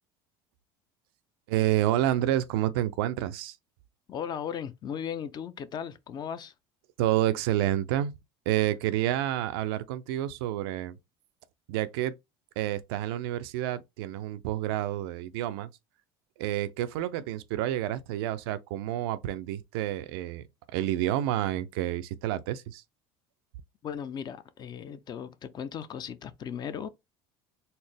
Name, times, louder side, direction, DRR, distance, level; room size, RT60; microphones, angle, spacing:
voice 1, 1.5-3.6 7.0-8.2 8.5-11.0 11.7-12.1 12.6-15.7 16.4-22.8, right 13 dB, 90° right, 0.4 m, -29 dB
voice 2, 4.1-6.5 23.8-26.9, left 8 dB, 35° left, 0.5 m, -37 dB
4.1 x 2.0 x 3.3 m
supercardioid pair, 115°, 12 cm